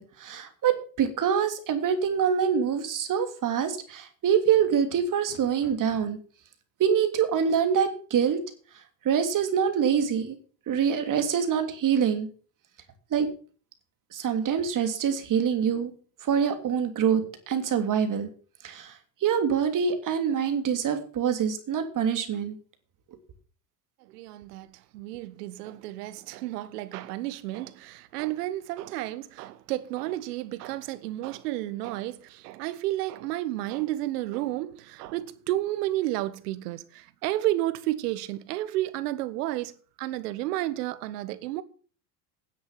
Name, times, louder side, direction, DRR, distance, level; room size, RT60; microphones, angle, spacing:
voice 1, 0.0-6.2 6.8-8.4 9.0-10.4 10.7-12.3 13.1-13.3 14.1-15.9 16.2-18.3 18.6-18.9 19.2-22.6, right 7 dB, 40° right, 3.0 m, -25 dB
voice 2, 24.1-24.7 24.9-41.6, right 15 dB, 75° right, 1.3 m, -31 dB
10.5 x 7.9 x 7.3 m
hypercardioid pair, 90°, 48 cm